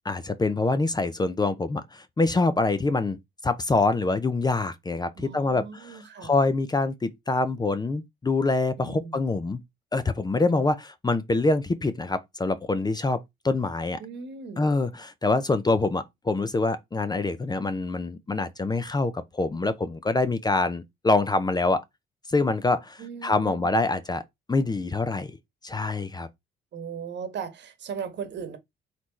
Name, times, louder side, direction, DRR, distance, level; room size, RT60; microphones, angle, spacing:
voice 1, 0.1-3.2 3.4-9.6 9.9-13.2 13.4-14.0 14.6-21.8 22.3-24.2 24.5-25.4 25.6-26.3, left 3 dB, 20° left, 0.5 m, -25 dB
voice 2, 5.2-6.3 8.8-9.2 14.0-14.7 23.0-23.7 26.7-28.6, right 6 dB, 60° right, 1.3 m, -38 dB
4.2 x 3.1 x 4.1 m
cardioid pair, 90°, 20 cm